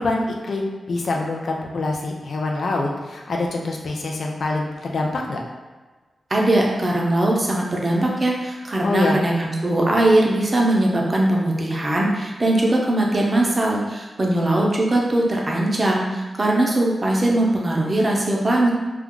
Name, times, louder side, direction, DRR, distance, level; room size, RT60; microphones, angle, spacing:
voice 1, 0.0-5.4 8.8-9.2, left 2 dB, 70° left, 0 dB, 0.5 m, -25 dB
voice 2, 6.3-18.7, right 1 dB, 35° right, -2 dB, 0.6 m, -20 dB
2.3 x 2.2 x 3.6 m, 1.3 s
cardioid pair, 80°, 0 cm